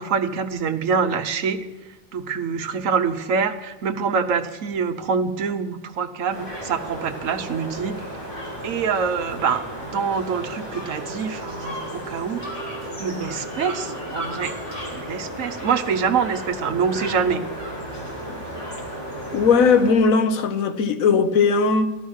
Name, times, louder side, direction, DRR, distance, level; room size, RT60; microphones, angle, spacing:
voice 1, 0.0-1.6 2.1-8.1 8.6-12.4 12.9-14.6 14.9-17.4, right 6 dB, 75° right, 8 dB, 1.3 m, -25 dB
sound 1, 6.3-19.9, equal, 30° left, 4.5 m, -33 dB
voice 2, 19.3-21.9, left 5 dB, 90° left, 10 dB, 1.3 m, -18 dB
15.5 x 12.0 x 6.4 m, 1.2 s
omnidirectional pair, 1.4 m